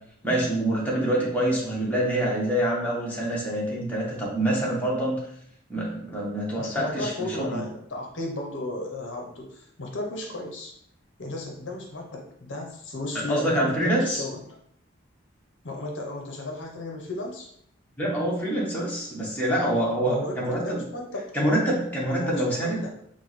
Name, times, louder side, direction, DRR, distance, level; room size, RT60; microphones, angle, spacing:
voice 1, 0.2-5.2 5.7-7.1 7.4-7.6 13.3-14.2 18.0-20.8 21.3-22.8, right 1 dB, 10° left, -6 dB, 1.0 m, -26 dB
voice 2, 6.6-10.7 11.2-14.6 15.6-17.5 20.0-21.3 22.2-22.9, left 2 dB, 65° left, 0 dB, 0.7 m, -34 dB
6.0 x 2.1 x 3.1 m, 0.69 s
head